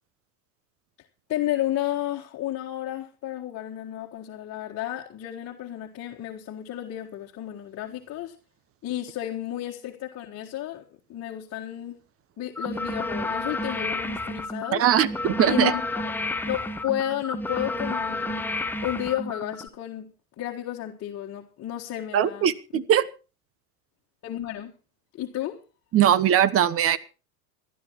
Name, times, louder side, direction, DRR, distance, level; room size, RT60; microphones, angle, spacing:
voice 1, 1.3-8.3 8.8-10.8 11.1-12.0 12.4-14.9 15.5-15.8 16.5-18.5 18.8-22.8 24.2-24.7 25.1-25.6, left 13 dB, 30° left, 1.7 m, -32 dB
sound 1, 12.6-19.7, left 2 dB, 5° left, 0.9 m, -31 dB
voice 2, 14.7-15.7 22.1-23.0 25.9-27.0, right 10 dB, 30° right, 1.0 m, -20 dB
26.5 x 11.5 x 3.1 m
figure-of-eight pair, 85°, 48 cm